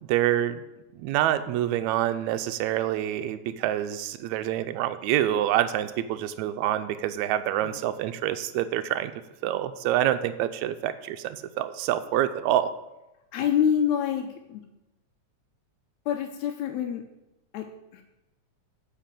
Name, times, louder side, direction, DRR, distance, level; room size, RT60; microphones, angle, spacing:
voice 1, 0.1-0.6 0.9-9.1 9.4-12.7, right 12 dB, 80° right, 11 dB, 1.9 m, -26 dB
voice 2, 13.3-14.7 16.1-17.0 17.5-18.0, left 8 dB, 85° left, 2 dB, 2.0 m, -27 dB
8.8 x 5.0 x 7.5 m, 0.97 s
omnidirectional pair, 3.3 m